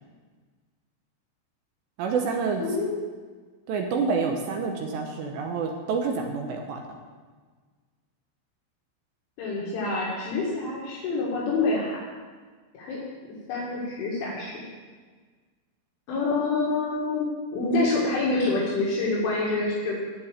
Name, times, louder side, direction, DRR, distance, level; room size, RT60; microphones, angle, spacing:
voice 1, 2.0-2.6 3.7-6.8, right 5 dB, 75° right, 2 dB, 2.8 m, -28 dB
voice 2, 2.6-3.0 9.4-12.0 12.7-13.0 13.5-14.6 16.1-20.0, left 3 dB, 70° left, -5 dB, 4.2 m, -27 dB
15.0 x 5.4 x 8.7 m, 1.5 s
omnidirectional pair, 5.9 m